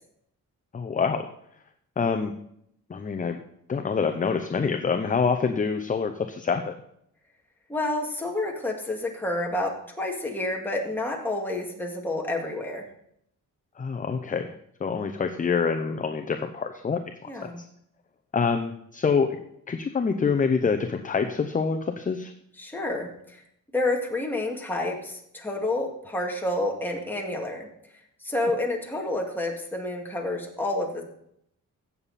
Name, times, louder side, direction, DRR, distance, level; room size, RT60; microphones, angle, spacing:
voice 1, 0.7-1.3 2.0-2.3 2.9-3.4 3.7-6.7 13.8-14.5 14.8-17.0 17.4-17.6 18.3-19.4 19.7-22.3, left 5 dB, 25° left, 7 dB, 0.7 m, -26 dB
voice 2, 7.7-12.9 17.3-17.6 22.6-23.4 23.7-27.7 28.2-31.0, left 2 dB, 5° left, -1 dB, 2.1 m, -29 dB
16.0 x 7.1 x 4.2 m, 0.72 s
cardioid pair, 140°, 32 cm